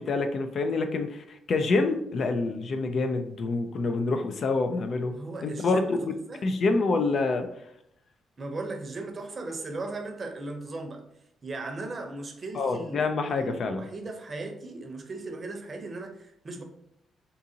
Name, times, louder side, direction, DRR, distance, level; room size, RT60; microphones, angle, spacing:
voice 1, 0.0-5.1 5.4-6.1 6.4-7.5 12.5-13.8, left 3 dB, 55° left, 7 dB, 0.4 m, -27 dB
voice 2, 5.1-6.0 6.3-6.5 8.4-11.0 11.4-16.6, right 2 dB, 40° right, 4 dB, 0.6 m, -37 dB
3.7 x 2.7 x 2.7 m, 0.77 s
cardioid pair, 90°, 0 cm